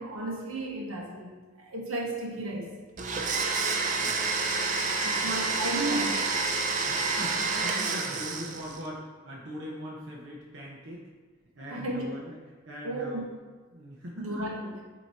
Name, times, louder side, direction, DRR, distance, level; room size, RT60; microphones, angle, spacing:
voice 1, 0.0-2.7 5.0-6.3 11.7-12.1 12.8-13.3 14.2-14.7, right 1 dB, 80° right, -1 dB, 1.1 m, -33 dB
Domestic sounds home sounds, 3.0-8.8, right 3 dB, 35° right, 0.4 m, -29 dB
voice 2, 4.0-4.4 6.8-11.1 11.5-12.4 12.7-13.2 13.7-14.3, equal, 60° right, -4 dB, 0.8 m, -41 dB
7.8 x 3.0 x 4.1 m, 1.3 s
head